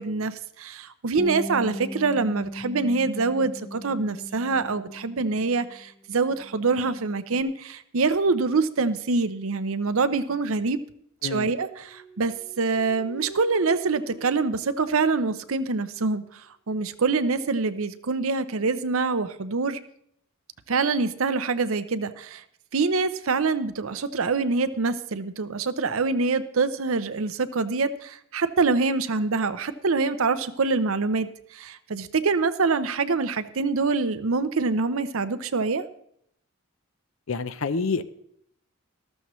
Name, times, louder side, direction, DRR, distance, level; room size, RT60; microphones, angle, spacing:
voice 1, 0.0-10.8 11.2-19.8 20.7-22.4 22.7-35.8, right 4 dB, 70° right, 12 dB, 0.7 m, -25 dB
Bass guitar, 1.2-5.9 6.2-7.4, left 1 dB, 5° left, 0.4 m, -39 dB
sound 1, 11.7-15.6, right 1 dB, 25° left, 4.2 m, -44 dB
voice 2, 37.3-38.0, left 4 dB, 65° left, 13 dB, 0.6 m, -27 dB
13.5 x 13.0 x 3.1 m, 0.71 s
head